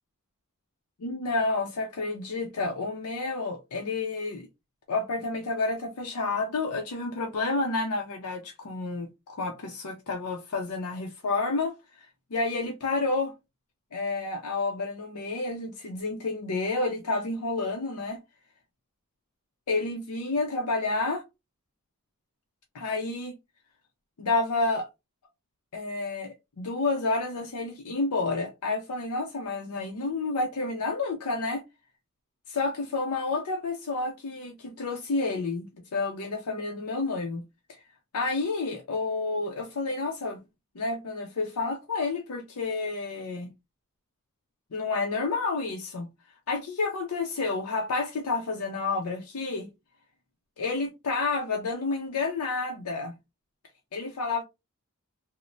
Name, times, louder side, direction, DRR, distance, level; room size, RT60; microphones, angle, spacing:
voice 1, 1.0-4.5 4.9-13.3 13.9-18.2 19.7-21.2 22.7-23.4 24.2-24.9 25.7-31.6 32.5-37.4 37.7-37.8 38.1-40.4 40.7-43.5 44.7-46.1 46.5-49.7 50.6-53.1 53.9-54.4, left 3 dB, 85° left, 0.6 m, -30 dB
3.0 x 2.1 x 2.5 m
head